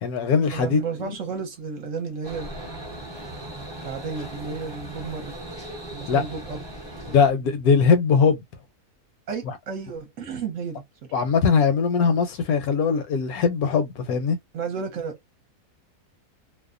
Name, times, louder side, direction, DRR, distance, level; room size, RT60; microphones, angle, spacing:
voice 1, 0.0-1.2 6.1-6.2 7.1-8.4 9.5-9.6 11.1-14.4, left 5 dB, 75° left, 1.1 m, -21 dB
voice 2, 0.5-2.5 3.8-5.4 5.9-6.6 7.0-7.1 9.3-10.8 14.5-15.3, right 5 dB, 60° right, 1.0 m, -32 dB
sound 1, 2.2-7.3, right 1 dB, 25° right, 0.6 m, -38 dB
2.7 x 2.1 x 2.4 m
omnidirectional pair, 1.7 m